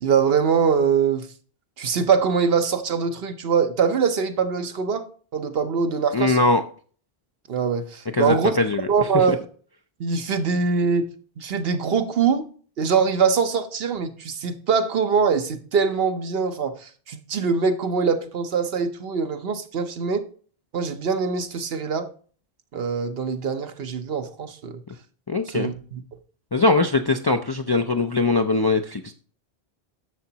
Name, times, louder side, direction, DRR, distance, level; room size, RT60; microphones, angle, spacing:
voice 1, 0.0-1.3 1.8-5.1 5.3-6.4 7.5-8.5 8.9-9.4 10.0-11.1 11.4-12.5 12.8-16.8 17.1-20.3 20.7-22.1 22.7-24.8 25.5-26.0, right 6 dB, 70° right, 1.0 m, -23 dB
voice 2, 6.1-6.6 8.1-8.9 9.1-9.2 25.3-25.7 26.5-29.1, left 3 dB, 40° left, 0.3 m, -21 dB
10.5 x 7.0 x 2.8 m
omnidirectional pair, 1.0 m